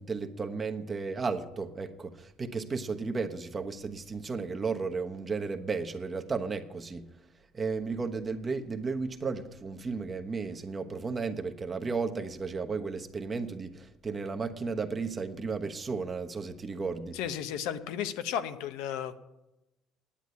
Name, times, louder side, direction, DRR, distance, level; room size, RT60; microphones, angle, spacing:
voice 1, 0.0-7.1 7.5-17.2, right 4 dB, 30° right, 1.1 m, -34 dB
voice 2, 17.1-19.2, left 9 dB, 85° left, 0.9 m, -34 dB
10.0 x 8.3 x 9.4 m
cardioid pair, 100°, 0 cm